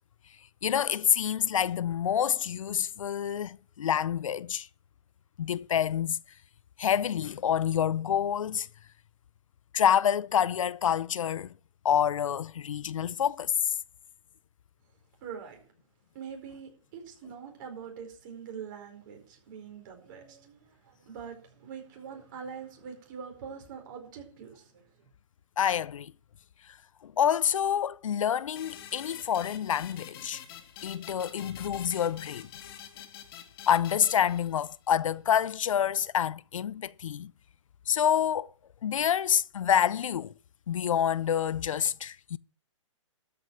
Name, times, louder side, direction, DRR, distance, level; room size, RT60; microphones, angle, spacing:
voice 1, 0.6-4.7 5.4-6.2 6.8-8.7 9.7-11.5 11.8-13.5 25.6-26.1 27.0-30.4 30.8-32.5 33.7-37.3 37.9-38.5 38.8-40.3 40.7-42.4, left 9 dB, 80° left, 0.5 m, -27 dB
voice 2, 15.2-15.7 16.1-25.1, right 7 dB, 40° right, 4.5 m, -44 dB
sound 1, 28.6-34.9, left 9 dB, 45° left, 2.0 m, -47 dB
13.0 x 5.8 x 7.9 m
hypercardioid pair, 155°, 17 cm